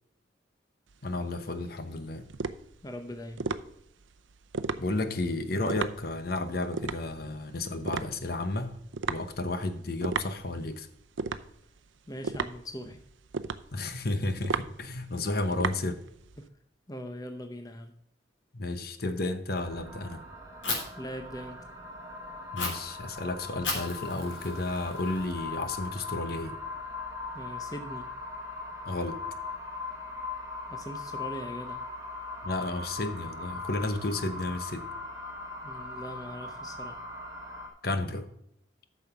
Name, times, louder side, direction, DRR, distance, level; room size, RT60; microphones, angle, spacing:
sound 1, 0.9-16.5, right 4 dB, 85° right, 0.6 m, -36 dB
voice 1, 1.0-2.2 4.8-8.8 9.1-10.9 13.7-16.0 18.5-20.2 22.5-26.5 28.9-29.2 32.4-34.9 37.8-38.3, left 2 dB, 50° left, 9 dB, 0.9 m, -32 dB
voice 2, 2.8-3.5 12.1-13.0 16.4-16.5 16.9-17.9 21.0-21.7 27.3-28.1 30.7-31.8 35.6-37.0, equal, 20° left, 6 dB, 0.7 m, -41 dB
sound 2, 19.6-37.7, left 3 dB, 20° right, 1.8 m, -40 dB
Fire, 20.6-20.8 22.6-22.7 23.6-25.6, left 3 dB, 75° left, 3.4 m, -35 dB
8.9 x 6.3 x 5.8 m, 0.74 s
head